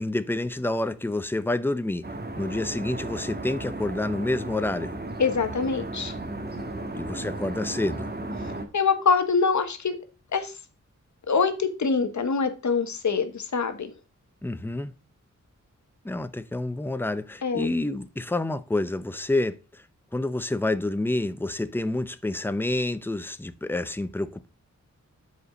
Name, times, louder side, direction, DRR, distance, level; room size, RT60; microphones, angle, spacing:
voice 1, 0.0-2.0 2.4-5.0 6.9-8.1 14.4-14.9 16.0-19.8 20.1-24.5, left 2 dB, 5° left, 0.6 m, -28 dB
sound 1, 2.0-8.6, right 2 dB, 30° right, 1.5 m, -35 dB
voice 2, 5.2-6.1 8.7-10.0 10.3-10.5 11.3-13.9 17.4-17.7, left 5 dB, 70° left, 1.2 m, -24 dB
8.2 x 4.8 x 5.0 m
wide cardioid pair, 100°, 30 cm